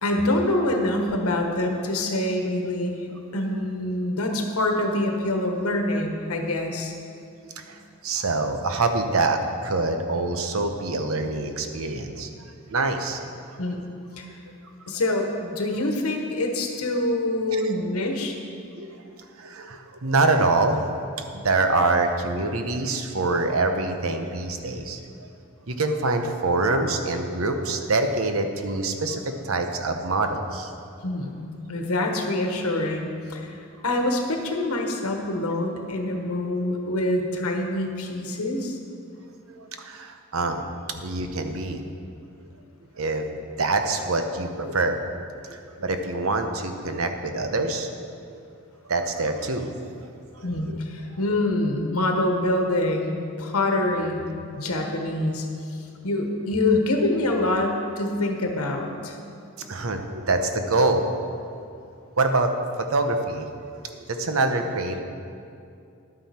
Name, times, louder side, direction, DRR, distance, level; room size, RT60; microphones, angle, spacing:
voice 1, 0.0-3.0 3.3-6.9 13.6-13.8 14.2-14.3 14.9-18.4 31.0-38.8 50.4-54.3 54.6-55.4 56.0-59.2, left 1 dB, 85° left, 3 dB, 1.2 m, -25 dB
voice 2, 7.4-12.3 12.7-13.3 17.5-17.6 18.7-19.0 19.4-25.3 25.7-30.7 39.5-40.7 41.0-41.8 43.0-45.0 45.5-47.9 48.3-48.4 48.9-49.9 50.3-50.8 59.7-61.1 62.2-62.5 62.9-63.5 63.9-65.0, right 3 dB, 75° right, 6 dB, 0.9 m, -25 dB
11.0 x 9.2 x 4.3 m, 2.5 s
head